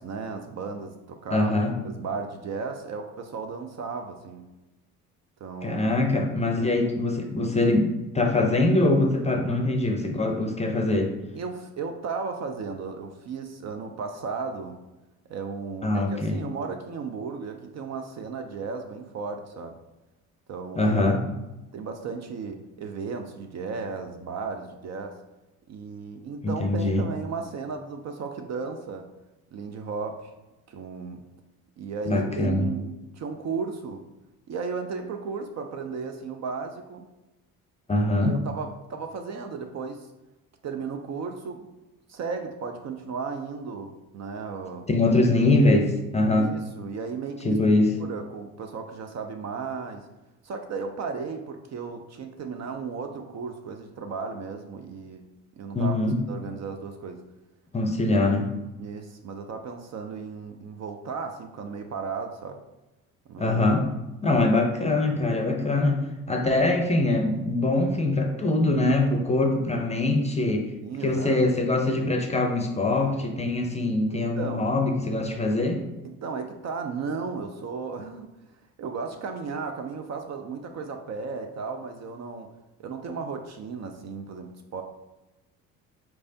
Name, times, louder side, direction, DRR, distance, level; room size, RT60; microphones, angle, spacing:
voice 1, 0.0-1.5 1.8-4.5 5.4-5.8 11.3-14.8 15.3-19.8 20.5-20.9 21.7-25.2 25.7-29.1 29.5-30.3 30.7-31.2 31.8-34.1 34.5-37.1 38.2-40.1 40.6-41.7 42.1-44.9 46.4-47.6 48.0-50.1 50.4-55.3 55.6-56.0 56.3-57.2 58.8-62.6 63.3-63.6 64.3-64.5 70.8-71.6 74.1-74.7 76.0-78.3 78.8-82.5 82.8-84.8, right 5 dB, 40° right, 5 dB, 0.5 m, -35 dB
voice 2, 1.3-1.7 5.6-11.1 15.8-16.4 20.8-21.2 26.4-27.0 32.1-32.7 37.9-38.3 44.9-46.5 47.4-47.9 55.7-56.2 57.7-58.5 63.4-63.9 64.2-66.0 66.3-70.7 71.0-75.8, left 2 dB, 15° left, 4 dB, 0.6 m, -23 dB
4.4 x 3.2 x 2.6 m, 1.0 s
hypercardioid pair, 55°, 41 cm